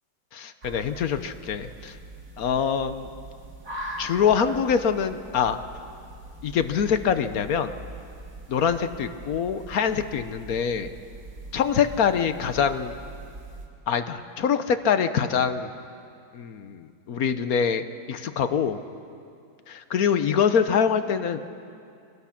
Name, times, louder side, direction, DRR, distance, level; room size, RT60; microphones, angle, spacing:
voice 1, 0.3-2.0 2.4-3.1 4.0-5.6 6.4-7.7 8.5-10.9 11.5-13.0 13.9-15.7 16.3-18.8 19.7-21.4, left 7 dB, 55° left, 10 dB, 1.1 m, -24 dB
sound 1, 0.6-13.7, right 2 dB, 40° right, 2.9 m, -42 dB
25.5 x 19.0 x 5.9 m, 2.4 s
omnidirectional pair, 2.2 m